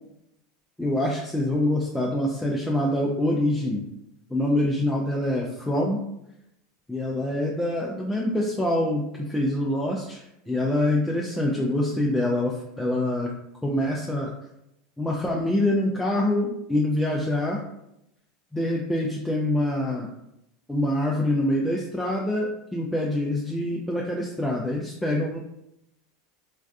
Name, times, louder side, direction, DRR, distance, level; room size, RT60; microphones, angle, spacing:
voice 1, 0.8-3.8 4.3-6.0 6.9-13.3 13.6-14.3 15.0-17.6 18.5-20.1 20.7-25.4, left 1 dB, 5° left, -3 dB, 0.3 m, -25 dB
2.5 x 2.2 x 2.3 m, 0.83 s
hypercardioid pair, 85°, 0 cm